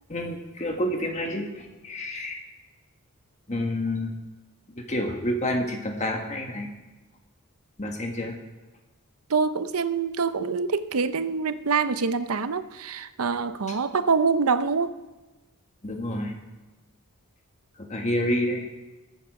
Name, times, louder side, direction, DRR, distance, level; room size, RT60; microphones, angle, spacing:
voice 1, 0.1-2.4 3.5-4.1 4.9-6.7 7.8-8.3 13.7-13.8 15.8-16.3 17.8-18.6, left 1 dB, 30° left, 2 dB, 1.6 m, -29 dB
voice 2, 9.3-14.9, right 5 dB, 75° right, 13 dB, 0.7 m, -25 dB
20.0 x 9.1 x 4.8 m, 1.2 s
head